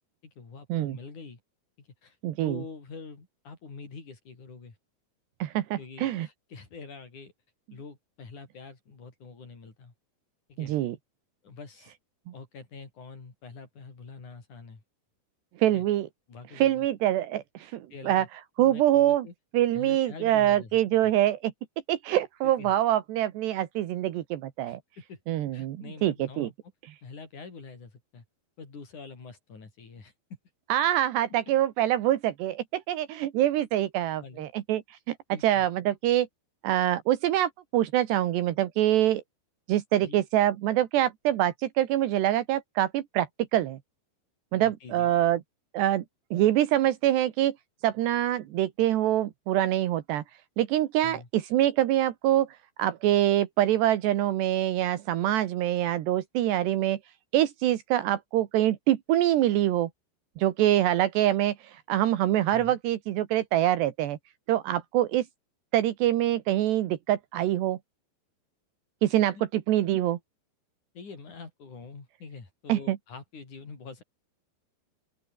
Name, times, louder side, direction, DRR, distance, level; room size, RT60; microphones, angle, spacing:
voice 1, 0.2-1.4 1.8-2.2 2.4-4.8 5.8-7.3 7.7-9.9 10.5-10.7 11.4-11.9 12.3-14.8 15.6-15.9 16.3-16.9 17.9-18.3 18.6-19.3 19.7-20.7 21.0-21.1 22.4-22.7 24.7-25.2 25.5-26.5 27.0-28.2 28.6-30.4 34.2-34.5 35.3-35.7 40.0-40.2 44.5-45.1 51.0-51.3 62.5-62.8 70.9-74.0, left 4 dB, 45° left, 6.7 m, -45 dB
voice 2, 2.2-2.6 5.4-6.3 10.6-11.0 15.6-16.1 16.6-18.3 18.6-19.3 19.5-21.5 21.9-24.8 25.3-26.5 30.7-35.2 35.4-36.3 36.6-39.2 39.7-43.8 44.5-45.4 45.7-46.1 46.3-47.6 47.8-50.2 50.6-52.5 52.8-57.0 57.3-59.9 60.4-64.2 64.5-65.3 65.7-67.8 69.0-70.2 72.7-73.0, right 13 dB, 80° right, 3.6 m, -25 dB
open air
omnidirectional pair, 5.0 m